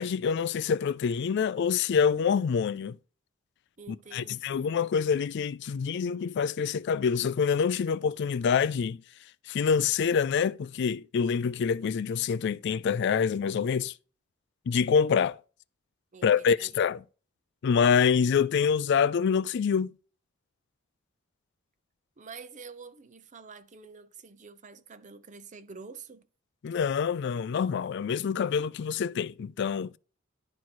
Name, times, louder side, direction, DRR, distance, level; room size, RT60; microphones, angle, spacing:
voice 1, 0.0-3.0 4.1-9.0 9.5-13.9 14.7-15.4 16.2-17.0 17.6-19.9 26.6-29.9, left 6 dB, 60° left, 0.3 m, -26 dB
voice 2, 3.8-4.7 16.1-16.8 22.2-26.2, right 5 dB, 40° right, 0.7 m, -47 dB
11.0 x 4.6 x 4.2 m
head